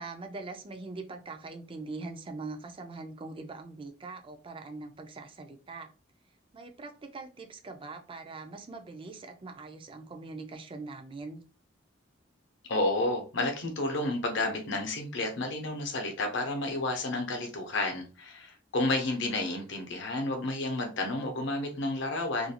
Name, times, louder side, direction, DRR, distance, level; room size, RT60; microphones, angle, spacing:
voice 1, 0.0-5.9 6.5-11.4, right 3 dB, 25° right, 0.4 m, -42 dB
voice 2, 12.7-22.5, left 2 dB, 60° left, 0.7 m, -31 dB
2.5 x 2.3 x 2.8 m
head